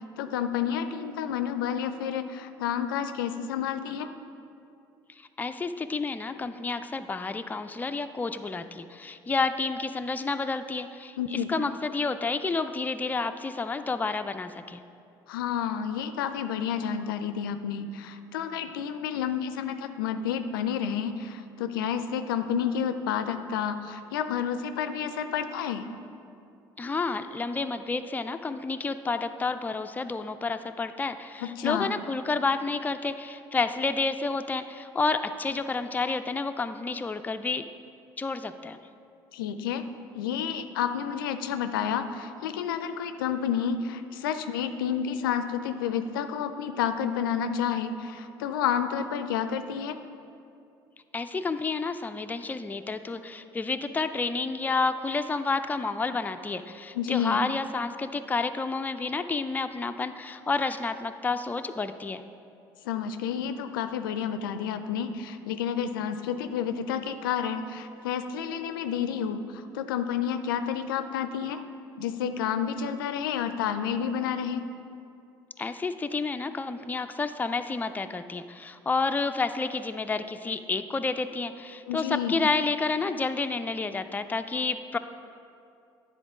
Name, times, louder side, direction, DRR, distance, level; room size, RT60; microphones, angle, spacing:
voice 1, 0.2-4.1 11.2-11.5 15.3-25.8 31.4-31.9 39.3-39.8 40.1-50.0 56.9-57.4 62.9-71.6 72.0-74.6 81.9-82.4, left 8 dB, 85° left, 10 dB, 0.4 m, -30 dB
voice 2, 5.2-14.8 26.8-37.6 38.2-38.8 51.1-62.2 75.6-85.0, left 4 dB, 15° left, 9 dB, 0.4 m, -30 dB
9.9 x 3.8 x 4.8 m, 2.5 s
hypercardioid pair, 60°, 11 cm